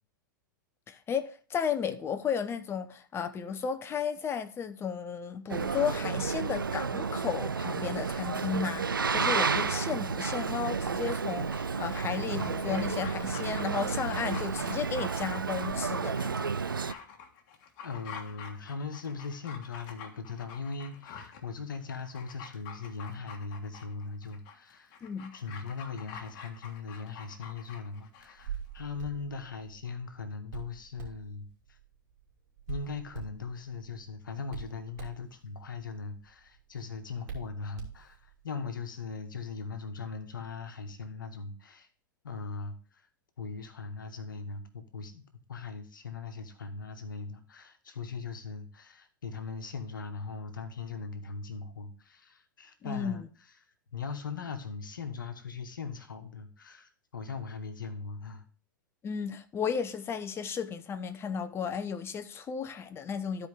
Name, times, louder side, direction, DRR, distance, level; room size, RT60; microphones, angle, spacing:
voice 1, 0.9-16.5 25.0-25.3 52.8-53.3 59.0-63.5, left 7 dB, 20° left, 0.8 m, -34 dB
Boat Water vehicle, 5.5-16.9, right 5 dB, 90° right, 0.4 m, -31 dB
Dog, 12.2-28.5 28.8-28.9, left 7 dB, 45° left, 1.5 m, -47 dB
voice 2, 17.8-25.0 25.3-31.8 32.7-41.9 42.2-43.1 43.4-45.2 45.5-53.2 53.9-58.5, left 5 dB, 75° left, 1.2 m, -39 dB
Hands, 28.2-38.4, right 7 dB, 55° right, 2.7 m, -46 dB
13.0 x 4.6 x 3.6 m
figure-of-eight pair, 95°, 11 cm